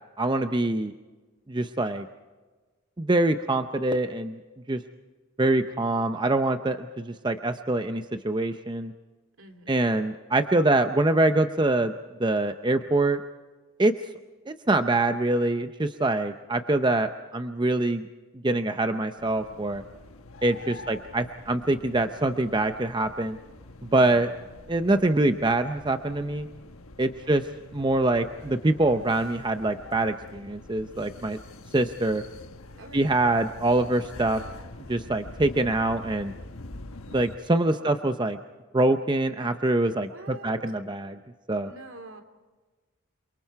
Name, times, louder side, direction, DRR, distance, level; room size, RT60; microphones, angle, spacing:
voice 1, 0.2-0.9 1.5-2.1 3.0-4.4 4.7-4.8 5.4-8.9 9.7-11.9 12.2-13.2 13.8-13.9 14.5-18.1 18.4-19.8 20.4-23.4 23.8-24.3 24.7-26.5 27.0-27.5 27.7-31.4 31.7-32.2 32.9-34.4 34.9-36.3 37.1-38.4 38.7-41.2 41.5-41.7, right 2 dB, 20° right, 8 dB, 0.6 m, -24 dB
voice 2, 9.4-9.9 27.2-27.3 32.7-33.2 37.6-37.9 40.1-40.6 41.6-42.2, right 2 dB, 65° right, 6 dB, 3.0 m, -47 dB
sound 1, 19.2-37.4, left 2 dB, 75° left, 1.3 m, -45 dB
28.5 x 24.0 x 4.7 m, 1.3 s
head